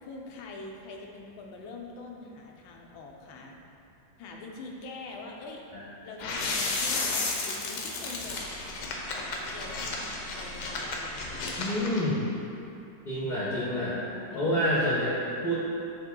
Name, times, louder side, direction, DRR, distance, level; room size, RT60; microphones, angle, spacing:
voice 1, 0.0-3.6 4.2-5.6 6.0-8.5 9.1-12.1 14.3-14.7, left 3 dB, 85° left, 0 dB, 1.5 m, -44 dB
sound 1, 6.2-12.0, left 3 dB, 70° left, 1.3 m, -33 dB
voice 2, 11.6-12.2 13.0-14.0 14.3-15.5, equal, 35° left, -8 dB, 0.8 m, -28 dB
8.0 x 3.5 x 3.7 m, 2.7 s
omnidirectional pair, 2.1 m